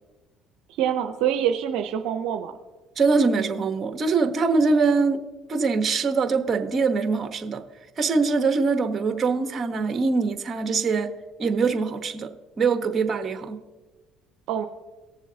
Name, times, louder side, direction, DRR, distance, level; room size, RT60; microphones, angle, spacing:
voice 1, 0.8-2.5 14.5-14.7, right 9 dB, 75° right, 6 dB, 0.6 m, -25 dB
voice 2, 3.0-5.2 5.5-7.6 8.0-11.1 11.4-13.6, right 4 dB, 40° right, 7 dB, 1.0 m, -23 dB
19.0 x 7.1 x 2.8 m, 1.2 s
supercardioid pair, 80°, 0 cm